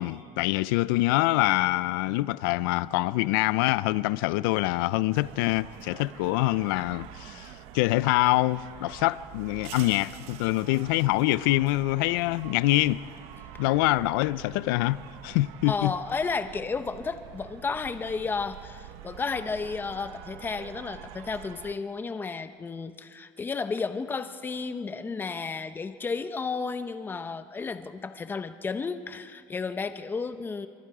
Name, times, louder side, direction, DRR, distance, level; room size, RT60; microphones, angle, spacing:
voice 1, 0.0-13.0 13.6-15.9, left 18 dB, 80° left, 0.5 m, -25 dB
sound 1, 5.1-21.7, right 11 dB, 65° right, 1.1 m, -46 dB
voice 2, 15.7-30.7, left 4 dB, 20° left, 0.9 m, -32 dB
25.5 x 23.5 x 4.9 m
supercardioid pair, 125°, 11 cm